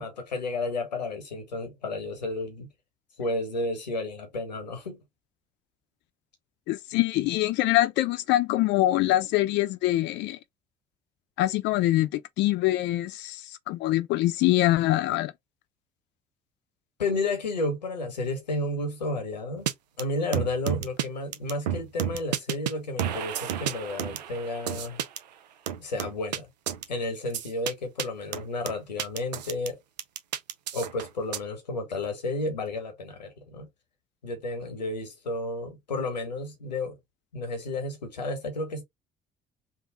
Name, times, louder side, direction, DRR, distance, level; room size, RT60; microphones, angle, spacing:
voice 1, 0.0-2.7 3.2-5.0 17.0-19.7 20.0-25.0 25.8-26.5 26.9-29.8 30.7-33.7 34.2-37.0 37.3-38.8, left 2 dB, 90° left, 0.8 m, -32 dB
voice 2, 6.7-10.4 11.4-13.4 13.7-15.3, left 16 dB, 60° left, 0.5 m, -24 dB
sound 1, 19.7-19.8 20.0-20.1 20.3-21.1 21.3-22.7 23.0-25.2 25.7-26.4 26.7-26.8 27.3-27.7 28.0-28.1 28.3-29.7 30.0-31.4, right 10 dB, 85° right, 0.4 m, -31 dB
3.5 x 2.0 x 3.8 m
figure-of-eight pair, 50°, 21 cm